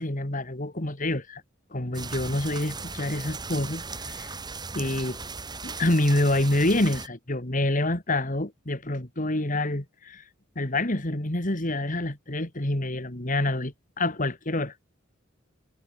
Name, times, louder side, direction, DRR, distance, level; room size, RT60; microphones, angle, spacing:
voice 1, 0.0-1.4 1.7-4.4 4.7-5.2 5.6-10.2 10.6-14.7, left 1 dB, 40° left, 2.7 m, -27 dB
sound 1, 1.9-7.1, right 4 dB, 20° right, 3.8 m, -37 dB
head